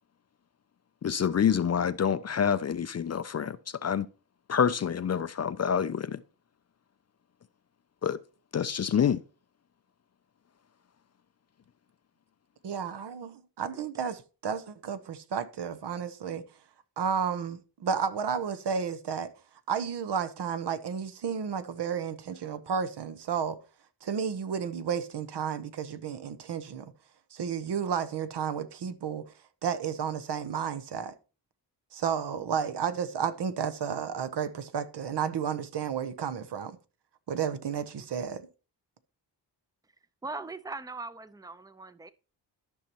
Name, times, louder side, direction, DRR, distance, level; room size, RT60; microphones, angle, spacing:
voice 1, 1.0-4.1 4.5-6.2 8.0-8.2 8.5-9.2, left 7 dB, 40° left, 0.4 m, -27 dB
voice 2, 12.6-16.4 17.0-19.3 19.7-23.6 24.0-26.9 27.3-29.3 29.6-31.1 31.9-36.8 37.3-38.5, right 7 dB, 65° right, 0.9 m, -32 dB
voice 3, 40.2-42.1, right 3 dB, 10° right, 0.6 m, -40 dB
13.0 x 5.5 x 2.9 m
cardioid pair, 70°, 44 cm